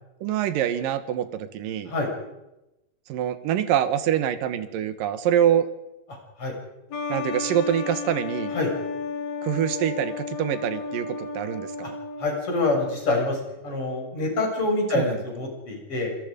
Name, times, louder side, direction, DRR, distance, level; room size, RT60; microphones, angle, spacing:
voice 1, 0.2-1.9 3.1-5.7 7.1-8.5 9.4-12.0 14.9-15.2, right 10 dB, 70° right, 11 dB, 3.0 m, -25 dB
sound 1, 6.9-13.2, left 5 dB, 55° left, 2.4 m, -33 dB
voice 2, 12.2-16.1, left 2 dB, 35° left, 0 dB, 7.5 m, -26 dB
30.0 x 22.0 x 5.2 m, 0.93 s
omnidirectional pair, 4.2 m